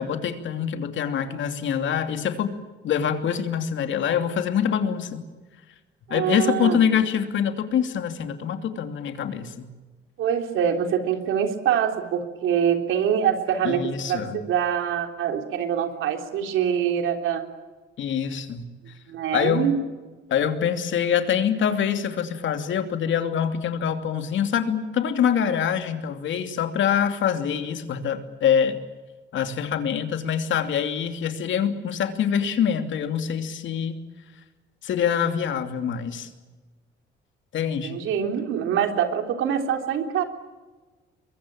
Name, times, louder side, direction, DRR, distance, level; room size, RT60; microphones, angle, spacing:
voice 1, 0.0-2.5 2.8-5.2 6.1-9.7 13.6-14.4 18.0-18.7 19.3-19.7 20.3-28.8 29.3-34.0 34.8-36.3 37.5-38.0, left 8 dB, 70° left, 7 dB, 2.9 m, -25 dB
voice 2, 6.1-6.8 10.2-17.4 19.1-19.8 37.8-40.2, right 8 dB, 85° right, 5 dB, 3.5 m, -24 dB
23.5 x 22.5 x 8.8 m, 1.3 s
cardioid pair, 90°, 20 cm